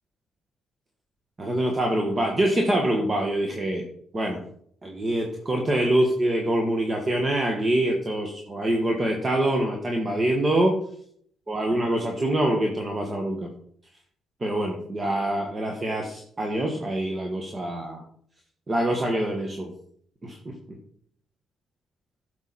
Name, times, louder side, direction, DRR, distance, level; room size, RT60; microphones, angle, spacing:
voice 1, 1.4-3.8 4.1-4.4 4.8-10.8 11.5-13.5 14.4-18.0 18.7-19.7 20.2-20.5, right 1 dB, 30° right, 1 dB, 1.7 m, -25 dB
11.5 x 7.1 x 4.3 m, 0.63 s
cardioid pair, 90°, 0 cm